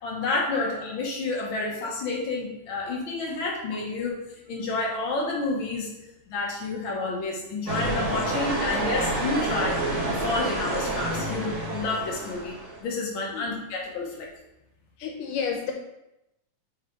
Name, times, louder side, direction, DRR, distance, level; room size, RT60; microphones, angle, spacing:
voice 1, 0.0-4.2 4.5-5.9 6.3-14.3, left 3 dB, 65° left, -2 dB, 1.2 m, -30 dB
sound 1, 7.7-12.8, right 2 dB, 40° right, 1.0 m, -28 dB
voice 2, 15.0-15.7, left 6 dB, 85° left, 2 dB, 2.3 m, -31 dB
5.1 x 4.8 x 4.4 m, 0.90 s
omnidirectional pair, 3.7 m